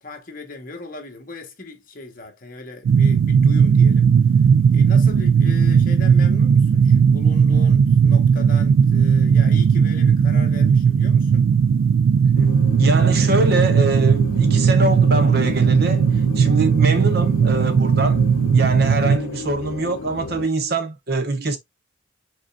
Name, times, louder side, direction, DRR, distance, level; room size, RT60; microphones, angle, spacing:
voice 1, 0.0-4.1 4.7-11.5, left 2 dB, 40° left, 1.2 m, -38 dB
sound 1, 2.8-19.2, right 6 dB, 80° right, 0.3 m, -16 dB
sound 2, 12.4-20.5, left 5 dB, 85° left, 0.5 m, -34 dB
voice 2, 12.8-16.1 16.4-18.2 18.5-21.6, right 2 dB, 50° right, 0.8 m, -23 dB
5.1 x 4.2 x 2.4 m
head